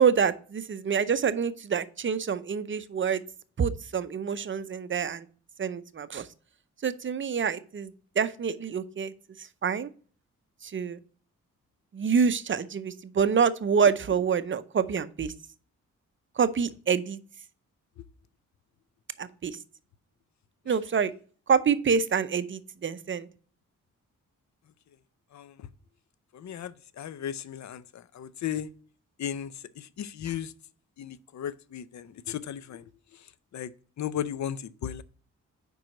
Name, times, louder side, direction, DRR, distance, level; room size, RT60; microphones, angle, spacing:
voice 1, 0.0-3.2 3.6-5.3 5.6-6.3 6.8-9.1 9.4-9.9 10.6-11.0 11.9-15.3 16.4-17.2 19.2-19.6 20.7-21.1 21.5-23.3, right 6 dB, 35° right, 0.6 m, -26 dB
voice 2, 25.3-25.7 26.3-28.7 29.2-30.5 31.0-35.0, left 9 dB, 60° left, 0.6 m, -36 dB
5.3 x 4.5 x 6.2 m
cardioid pair, 65°, 32 cm